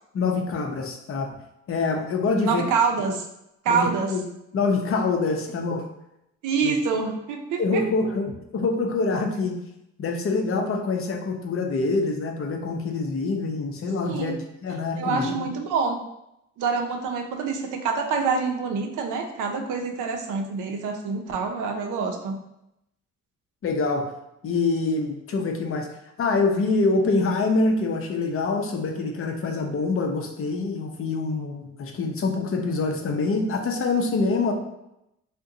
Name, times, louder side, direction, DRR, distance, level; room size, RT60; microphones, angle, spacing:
voice 1, 0.1-1.3 1.7-2.6 3.7-4.2 4.5-5.8 6.6-6.7 7.6-9.5 10.0-15.5 23.6-24.1 24.4-25.9 26.2-34.5, left 3 dB, 45° left, 3 dB, 0.6 m, -25 dB
voice 2, 2.4-3.3 3.6-4.1 6.4-7.8 14.0-14.3 15.0-16.0 16.6-22.4, right 5 dB, 85° right, 3 dB, 0.6 m, -26 dB
2.6 x 2.2 x 3.7 m, 0.84 s
cardioid pair, 90°, 30 cm